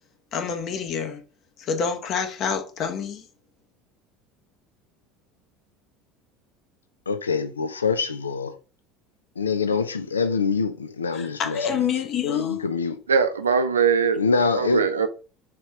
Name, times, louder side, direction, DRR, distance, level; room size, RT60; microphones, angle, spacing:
voice 1, 0.3-1.2 1.6-3.2 11.1-12.6, left 7 dB, 50° left, 0.7 m, -27 dB
voice 2, 7.1-8.5 9.4-11.6 12.2-13.0 14.2-14.8, left 4 dB, 90° left, 0.4 m, -25 dB
voice 3, 13.1-14.2 14.5-15.1, right 6 dB, 85° right, 0.4 m, -21 dB
3.4 x 2.9 x 3.1 m
hypercardioid pair, 70°, 0 cm